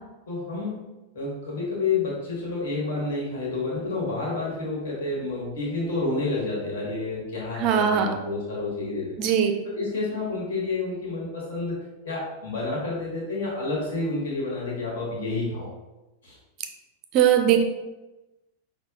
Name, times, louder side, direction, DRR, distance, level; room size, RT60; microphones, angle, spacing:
voice 1, 0.3-0.8 1.1-9.2 9.6-11.8 12.0-15.7 16.2-16.4, left 3 dB, 55° left, -4 dB, 1.3 m, -29 dB
voice 2, 7.6-8.1 9.2-9.5 17.1-17.6, right 9 dB, 40° right, 6 dB, 0.4 m, -20 dB
5.5 x 2.0 x 2.3 m, 1.0 s
figure-of-eight pair, 90°, 0 cm